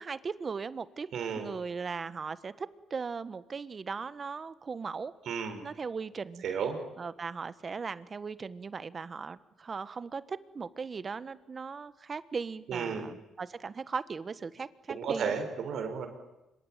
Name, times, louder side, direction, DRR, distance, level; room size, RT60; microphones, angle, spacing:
voice 1, 0.0-1.1 1.4-5.1 5.6-6.4 7.0-15.3, right 5 dB, 40° right, 15 dB, 1.3 m, -38 dB
voice 2, 1.1-1.5 5.2-5.6 6.4-6.8 12.7-13.1 14.9-16.1, right 6 dB, 70° right, 7 dB, 5.0 m, -33 dB
26.0 x 23.5 x 9.0 m, 0.95 s
cardioid pair, 90°, 0 cm